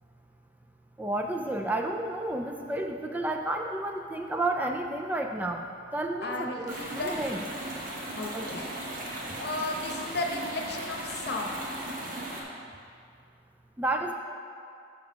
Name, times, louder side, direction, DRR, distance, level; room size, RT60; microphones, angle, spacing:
voice 1, 1.0-7.4 8.3-8.5 13.8-14.1, right 2 dB, 10° right, 2 dB, 0.3 m, -31 dB
voice 2, 6.2-7.5 8.1-8.7 9.3-11.6, left 2 dB, 60° left, 1 dB, 0.9 m, -34 dB
sound 1, 6.7-12.4, right 1 dB, 50° right, 1.1 m, -37 dB
7.1 x 5.1 x 5.7 m, 2.4 s
head